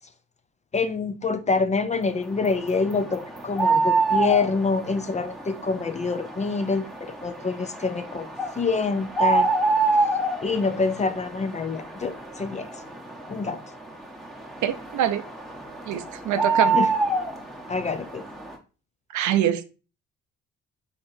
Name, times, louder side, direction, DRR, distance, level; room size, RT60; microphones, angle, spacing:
voice 1, 0.7-6.8 7.2-8.3 8.6-9.5 10.4-12.7 13.3-13.6 16.7-16.9 17.7-18.2, left 4 dB, 25° left, 0.4 m, -26 dB
sound 1, 2.2-18.6, right 3 dB, ahead, 0.8 m, -28 dB
voice 2, 14.6-15.2 15.9-16.8 19.1-19.6, right 10 dB, 75° right, 0.6 m, -24 dB
4.7 x 3.6 x 2.6 m
cardioid pair, 90°, 30 cm